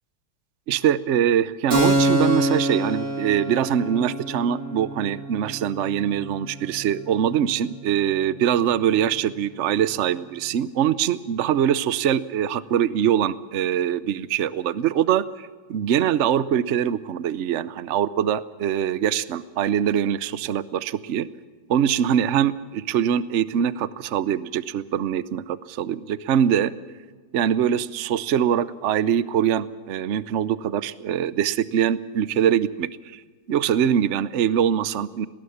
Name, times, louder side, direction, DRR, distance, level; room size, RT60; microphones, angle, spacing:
voice 1, 0.7-21.3 21.7-26.7 27.3-33.2 33.5-35.3, right 9 dB, 85° right, 16 dB, 0.6 m, -23 dB
Keyboard (musical), 1.7-9.0, right 1 dB, 45° right, 3.9 m, -27 dB
19.5 x 19.0 x 7.2 m, 1.5 s
omnidirectional pair, 2.2 m